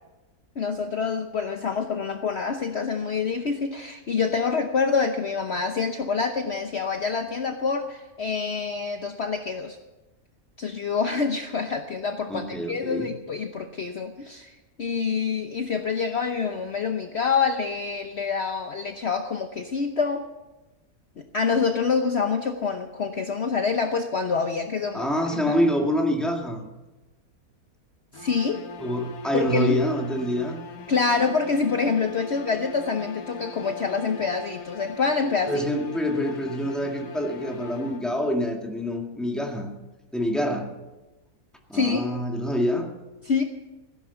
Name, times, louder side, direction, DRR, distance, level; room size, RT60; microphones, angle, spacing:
voice 1, 0.6-9.8 10.6-20.2 21.2-25.5 28.1-28.6 29.3-29.8 30.9-35.7 41.7-42.1 43.2-43.4, left 5 dB, 50° left, 5 dB, 1.1 m, -26 dB
voice 2, 12.3-13.1 24.9-26.7 28.8-30.6 35.5-39.7 40.1-40.7 41.7-42.9, equal, ahead, 1 dB, 1.9 m, -26 dB
sound 1, 28.1-38.4, left 2 dB, 70° left, 1.5 m, -40 dB
16.5 x 10.5 x 7.0 m, 1.1 s
omnidirectional pair, 1.6 m